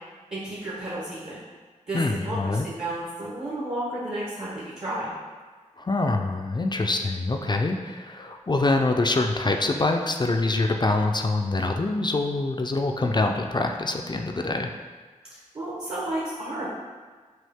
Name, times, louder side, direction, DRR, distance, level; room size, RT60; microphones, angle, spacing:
voice 1, 0.3-1.4 1.9-5.1 15.5-16.7, right 1 dB, 45° right, -8 dB, 1.2 m, -32 dB
voice 2, 1.9-2.7 5.8-14.7, left 2 dB, 35° left, 3 dB, 0.4 m, -25 dB
6.3 x 2.4 x 3.5 m, 1.4 s
cardioid pair, 50°, 13 cm